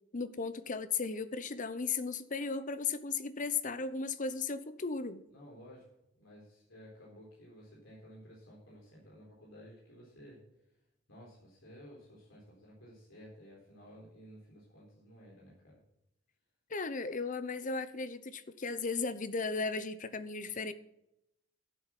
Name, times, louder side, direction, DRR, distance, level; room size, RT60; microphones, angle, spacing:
voice 1, 0.1-5.2 16.7-20.7, left 4 dB, 40° left, 13 dB, 0.8 m, -36 dB
voice 2, 5.3-5.9 6.2-10.4 11.1-15.8, equal, 85° left, -4 dB, 4.0 m, -54 dB
12.0 x 8.0 x 5.9 m, 0.82 s
head